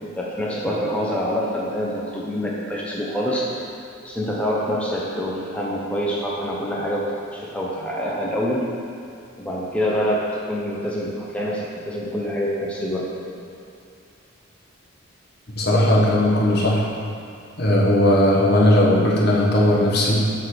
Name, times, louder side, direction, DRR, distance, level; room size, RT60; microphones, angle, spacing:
voice 1, 0.0-3.6 4.0-8.7 9.4-13.1, equal, 5° left, -5 dB, 0.8 m, -26 dB
voice 2, 15.6-16.9 17.6-20.3, left 1 dB, 50° left, -3 dB, 1.4 m, -17 dB
9.1 x 4.1 x 6.9 m, 2.6 s
head